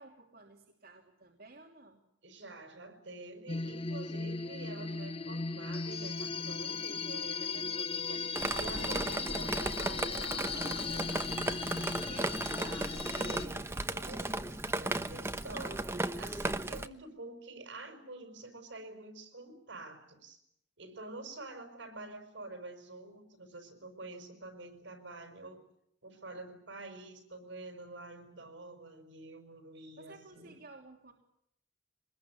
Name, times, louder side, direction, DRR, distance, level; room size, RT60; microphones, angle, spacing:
voice 1, 0.0-2.0 12.0-12.4 30.0-31.1, right 3 dB, 55° right, -1 dB, 3.2 m, -53 dB
voice 2, 2.2-11.3 12.6-20.4 20.8-25.6 26.0-30.6, right 2 dB, 75° right, 7 dB, 5.5 m, -48 dB
sound 1, 3.5-13.5, left 4 dB, 30° left, 1.0 m, -37 dB
Drip, 8.4-16.9, right 2 dB, 15° right, 1.0 m, -35 dB
24.5 x 21.0 x 9.8 m, 0.76 s
head